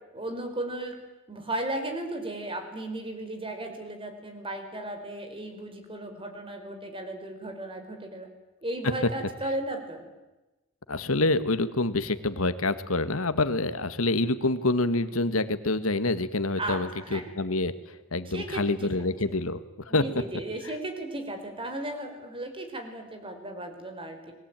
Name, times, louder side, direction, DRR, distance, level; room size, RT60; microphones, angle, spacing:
voice 1, 0.1-0.9 1.3-8.3 8.6-10.1 16.6-17.2 18.3-19.1 19.9-24.3, right 1 dB, 25° right, 6 dB, 5.1 m, -35 dB
voice 2, 10.9-20.0 20.6-20.7, left 2 dB, 85° left, 12 dB, 1.7 m, -27 dB
29.5 x 21.5 x 9.1 m, 1.1 s
head